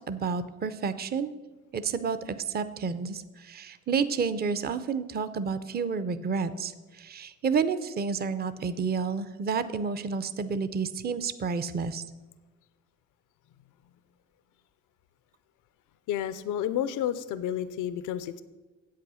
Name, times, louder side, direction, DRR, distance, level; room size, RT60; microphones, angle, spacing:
voice 1, 0.1-1.3 1.7-12.0, right 5 dB, 30° right, 12 dB, 0.6 m, -30 dB
voice 2, 16.1-18.4, left 10 dB, 85° left, 14 dB, 0.5 m, -30 dB
8.3 x 8.0 x 6.2 m, 1.2 s
cardioid pair, 90°, 30 cm